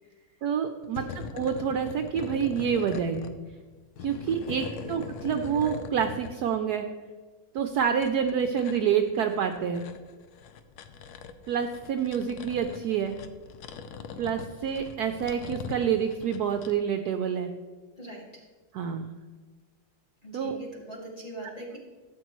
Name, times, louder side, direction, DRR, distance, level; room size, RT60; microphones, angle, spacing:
voice 1, 0.4-3.3 4.0-6.9 7.5-9.9 11.5-13.2 14.2-17.5 18.7-19.2 20.3-20.6, right 7 dB, 70° right, 6 dB, 1.0 m, -28 dB
sound 1, 0.8-3.3 3.8-6.3 7.6-16.7, left 6 dB, 65° left, 1.1 m, -41 dB
voice 2, 18.0-18.4 20.2-21.8, right 1 dB, 20° left, -3 dB, 2.3 m, -42 dB
13.0 x 8.1 x 3.0 m, 1.4 s
omnidirectional pair, 2.0 m